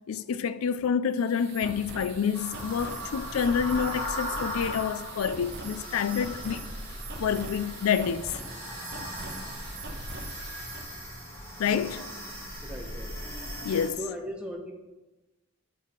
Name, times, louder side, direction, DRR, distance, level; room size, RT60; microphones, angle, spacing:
voice 1, 0.0-6.7 7.2-8.4 11.6-12.0 13.6-14.0, left 7 dB, 80° left, 0.4 m, -28 dB
sound 1, 1.1-10.9, right 3 dB, 50° right, 1.1 m, -42 dB
sound 2, 2.3-13.9, equal, 10° left, 1.5 m, -38 dB
voice 2, 11.6-11.9 12.6-13.2 14.0-14.7, equal, 5° right, 0.9 m, -38 dB
8.4 x 5.8 x 4.4 m
head